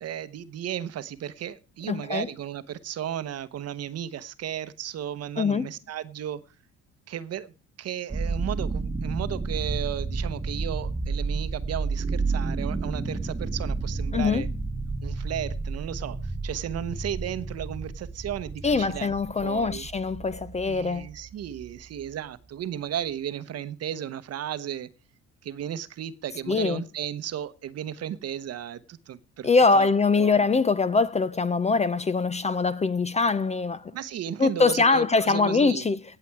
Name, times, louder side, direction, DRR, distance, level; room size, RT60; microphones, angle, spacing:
voice 1, 0.0-6.4 7.1-14.5 15.0-19.1 19.4-19.9 20.6-24.9 25.4-29.5 29.7-29.9 30.2-30.4 33.9-35.8, right 10 dB, 50° right, 0.9 m, -34 dB
voice 2, 1.9-2.3 5.4-5.7 14.1-14.5 18.6-21.1 26.5-26.8 29.4-33.9 34.4-36.0, left 4 dB, 20° left, 0.5 m, -23 dB
sound 1, 8.1-22.1, right 3 dB, 15° right, 1.2 m, -31 dB
17.5 x 6.9 x 4.7 m
cardioid pair, 100°, 32 cm